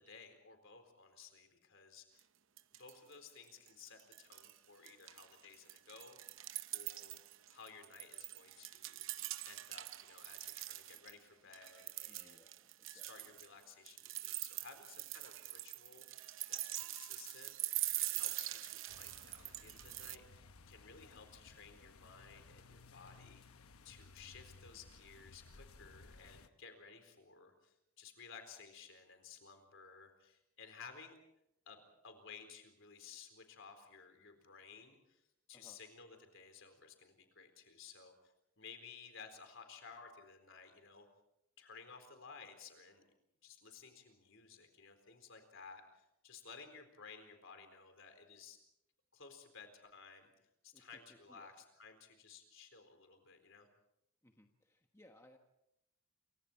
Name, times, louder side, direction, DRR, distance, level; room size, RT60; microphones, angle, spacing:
voice 1, 0.0-2.2 2.8-6.2 6.7-7.2 7.5-9.0 9.5-12.4 12.9-23.4 23.8-31.2 31.7-38.1 38.6-41.1 41.6-43.0 43.4-48.6 49.1-50.3 50.6-53.7, left 5 dB, 60° left, 6 dB, 4.1 m, -56 dB
sound 1, 2.2-2.3 2.6-3.1 3.4-4.6 4.9-11.1 11.5-20.2, right 15 dB, 60° right, 0.7 m, -44 dB
voice 2, 12.1-13.4 35.5-35.8 50.7-51.6 54.2-55.4, left 1 dB, 15° left, 3 dB, 1.3 m, -65 dB
sound 2, 18.9-26.5, left 3 dB, 75° left, 1.0 m, -59 dB
28.5 x 24.5 x 4.4 m, 0.83 s
head